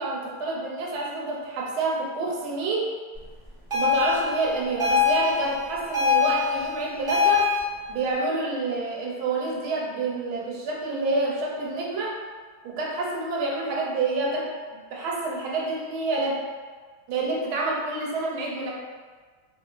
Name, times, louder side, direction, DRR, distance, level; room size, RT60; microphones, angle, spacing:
voice 1, 0.0-2.9 3.7-7.5 7.9-12.2 12.6-16.4 17.1-18.7, right 3 dB, 85° right, -3 dB, 1.1 m, -28 dB
sound 1, 3.7-7.6, left 6 dB, 50° right, 0.3 m, -23 dB
2.6 x 2.3 x 2.3 m, 1.5 s
omnidirectional pair, 1.7 m